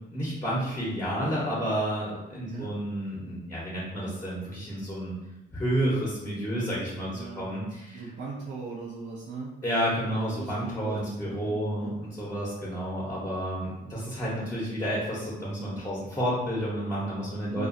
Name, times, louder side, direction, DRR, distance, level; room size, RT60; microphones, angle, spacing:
voice 1, 0.1-5.2 5.5-8.1 9.6-17.7, equal, 15° left, -7 dB, 0.7 m, -30 dB
voice 2, 7.0-7.5 7.9-9.5 10.4-12.0 17.5-17.7, right 4 dB, 65° right, -4 dB, 0.5 m, -39 dB
2.5 x 2.2 x 2.5 m, 0.95 s
cardioid pair, 90°, 20 cm